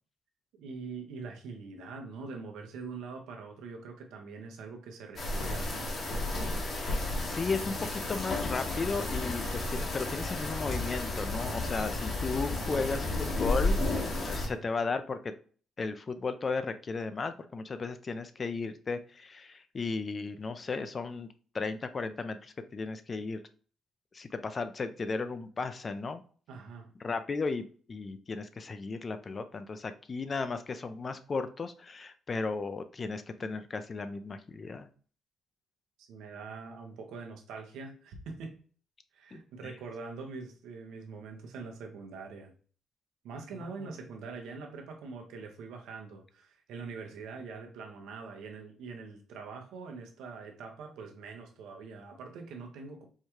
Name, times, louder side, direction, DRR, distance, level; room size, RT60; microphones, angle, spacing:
voice 1, 0.6-5.9 12.7-13.3 14.4-14.6 26.5-26.9 36.1-38.6 39.1-42.5 43.2-53.0, right 4 dB, 80° right, 0.7 m, -44 dB
sound 1, 5.2-14.5, left 2 dB, 60° left, 1.3 m, -32 dB
voice 2, 6.7-13.8 14.2-15.3 15.8-21.3 21.5-23.4 24.1-26.2 27.0-34.9 39.3-39.7 43.8-43.9, left 4 dB, 40° left, 0.4 m, -35 dB
4.6 x 2.3 x 3.0 m
supercardioid pair, 60°, 0 cm